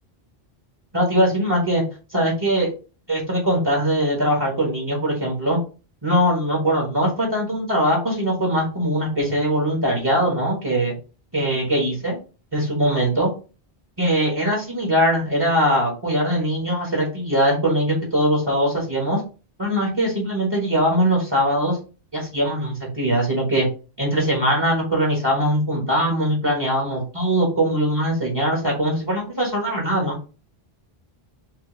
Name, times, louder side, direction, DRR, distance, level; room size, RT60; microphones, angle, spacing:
voice 1, 0.9-1.8 2.1-2.7 3.1-5.6 6.0-10.9 11.3-12.2 12.5-13.3 14.0-19.2 19.6-21.8 22.1-23.7 24.0-30.1, equal, 25° right, -2 dB, 1.3 m, -21 dB
4.8 x 2.6 x 3.8 m, 0.34 s
omnidirectional pair, 1.1 m